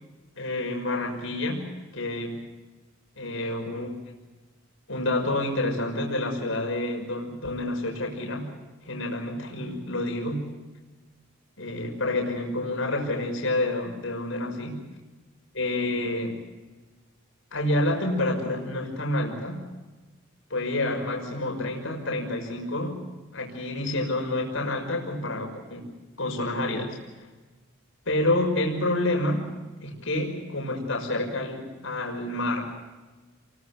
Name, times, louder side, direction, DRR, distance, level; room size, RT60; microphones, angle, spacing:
voice 1, 0.4-1.7 1.9-2.4 3.2-4.0 4.9-8.5 8.8-10.5 11.6-14.8 15.5-16.4 17.5-19.6 20.5-23.1 23.3-25.9 26.2-27.3 28.1-29.5 29.8-32.7, left 1 dB, 80° left, 1 dB, 6.0 m, -28 dB
29.5 x 23.5 x 6.3 m, 1.2 s
head